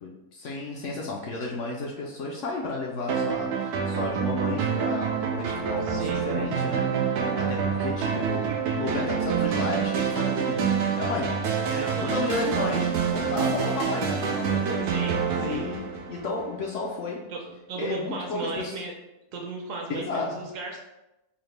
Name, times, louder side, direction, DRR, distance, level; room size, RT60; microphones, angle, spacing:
voice 1, 0.0-11.4 12.0-14.9 15.3-17.2 17.8-18.8 19.9-20.4, left 3 dB, 65° left, -2 dB, 0.8 m, -33 dB
sound 1, 3.1-16.6, right 6 dB, 90° right, 1.1 m, -27 dB
voice 2, 5.8-6.3 8.1-8.6 11.7-12.3 14.9-15.7 17.3-18.9 19.3-20.8, right 3 dB, 65° right, 1 dB, 0.9 m, -35 dB
4.9 x 2.1 x 3.2 m, 0.93 s
omnidirectional pair, 1.6 m